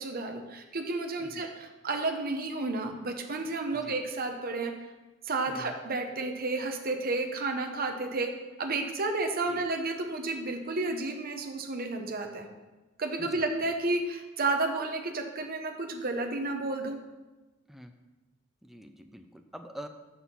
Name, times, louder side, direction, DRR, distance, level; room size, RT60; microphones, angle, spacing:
voice 1, 0.0-4.7 5.2-8.3 8.6-12.5 13.0-17.0, right 2 dB, 50° right, 4 dB, 0.9 m, -31 dB
voice 2, 13.2-13.7 17.7-17.9 18.6-19.9, equal, ahead, 5 dB, 0.5 m, -46 dB
6.3 x 6.1 x 5.5 m, 1.1 s
head